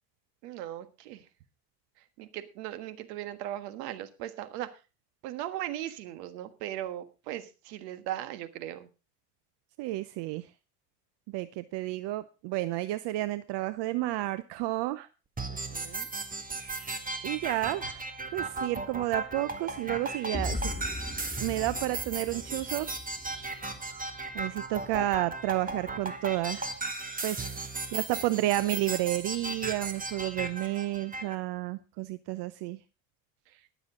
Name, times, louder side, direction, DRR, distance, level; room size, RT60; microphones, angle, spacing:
voice 1, 0.4-1.3 2.0-4.8 5.2-8.9 15.5-16.1 33.5-33.7, right 13 dB, 80° right, 11 dB, 1.6 m, -38 dB
voice 2, 9.8-10.4 11.3-15.1 17.2-20.7 21.4-22.9 24.3-26.7 27.2-27.5 27.9-32.8, right 16 dB, 60° right, 14 dB, 0.8 m, -31 dB
sound 1, 15.4-31.4, right 3 dB, 15° right, 1.7 m, -36 dB
sound 2, 20.3-24.2, left 2 dB, 15° left, 1.2 m, -39 dB
21.0 x 7.2 x 3.7 m, 0.30 s
supercardioid pair, 95°, 47 cm